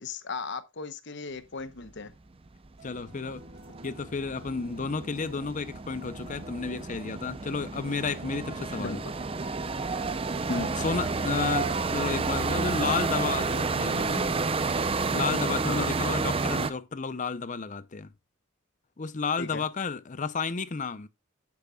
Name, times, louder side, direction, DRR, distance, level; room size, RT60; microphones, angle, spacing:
voice 1, 0.0-2.1 8.8-9.0 10.5-10.7 15.6-15.9 19.4-19.6, left 3 dB, 55° left, 0.9 m, -36 dB
sound 1, 2.5-2.6 2.8-16.7, right 4 dB, 25° right, 0.5 m, -30 dB
voice 2, 2.8-3.5 3.8-9.0 10.8-14.3 15.1-18.1 19.0-21.1, left 4 dB, 35° left, 0.6 m, -32 dB
sound 2, 2.8-15.4, right 1 dB, 50° right, 1.7 m, -51 dB
9.9 x 8.7 x 2.3 m
head